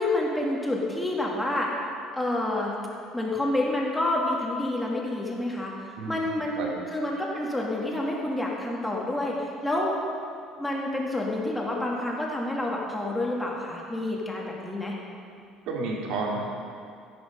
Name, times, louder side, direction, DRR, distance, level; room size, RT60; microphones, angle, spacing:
voice 1, 0.0-1.7 2.1-2.7 3.1-5.7 6.1-9.9 10.6-14.9, left 1 dB, 5° left, -2 dB, 1.7 m, -28 dB
voice 2, 6.0-6.3 6.6-6.7 15.7-16.5, right 3 dB, 65° right, -2 dB, 2.7 m, -31 dB
13.5 x 10.5 x 5.4 m, 2.4 s
cardioid pair, 180°, 0 cm